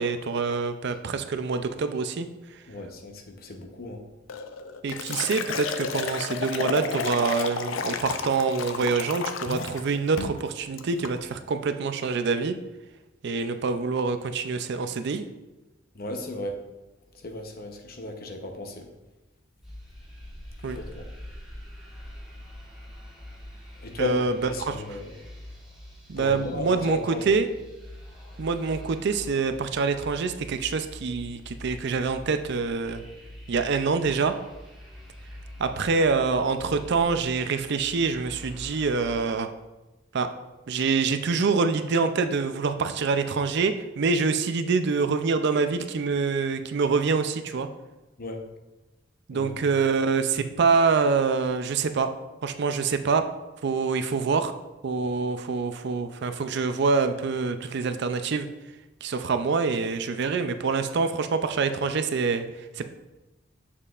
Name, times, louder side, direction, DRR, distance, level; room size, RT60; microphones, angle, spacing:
voice 1, 0.0-2.6 4.8-12.6 13.2-15.2 20.6-20.8 24.0-25.0 26.1-27.5 28.4-33.0 33.5-34.3 35.6-39.5 40.1-40.3 40.7-47.7 49.3-52.1 52.4-53.3 53.6-54.5 54.8-58.5 59.0-62.9, right 4 dB, 60° right, 9 dB, 0.5 m, -26 dB
voice 2, 2.7-4.0 15.9-16.6 17.2-18.9 20.7-21.0 23.8-25.1 26.2-27.3 48.2-48.4 49.3-49.5, left 1 dB, 50° left, 4 dB, 0.8 m, -35 dB
Liquid, 4.3-9.8 10.2-10.4 10.8-11.2, left 6 dB, 75° left, 0.5 m, -32 dB
sound 1, 19.6-39.3, left 1 dB, ahead, 1.7 m, -44 dB
7.1 x 6.6 x 2.4 m, 1.1 s
head